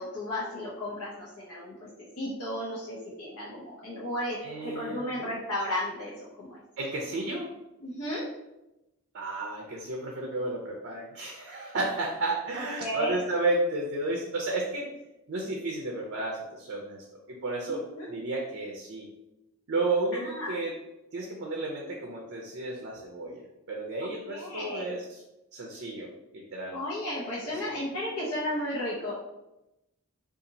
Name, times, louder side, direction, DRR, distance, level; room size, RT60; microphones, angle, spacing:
voice 1, 0.0-4.4 4.6-6.1 6.4-6.6 7.8-8.2 12.5-13.2 17.7-18.1 20.2-20.5 24.0-24.9 26.7-29.1, left 1 dB, 70° left, -7 dB, 0.8 m, -34 dB
voice 2, 4.4-5.2 6.8-7.5 9.1-14.9 15.3-17.0 17.4-17.8 18.1-19.1 19.7-20.7 21.1-25.2 25.5-26.8 27.7-27.8, right 2 dB, 55° right, 0 dB, 0.5 m, -32 dB
2.7 x 2.5 x 3.9 m, 0.95 s
head